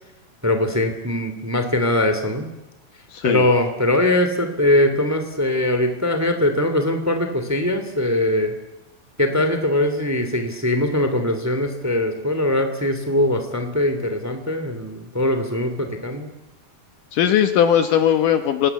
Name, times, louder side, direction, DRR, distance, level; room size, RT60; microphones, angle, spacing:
voice 1, 0.4-2.5 3.2-8.5 9.2-16.3, left 1 dB, 5° right, 7 dB, 2.2 m, -21 dB
voice 2, 3.1-3.5 17.1-18.7, left 9 dB, 70° left, 8 dB, 2.4 m, -18 dB
27.0 x 20.0 x 8.3 m, 0.94 s
omnidirectional pair, 4.4 m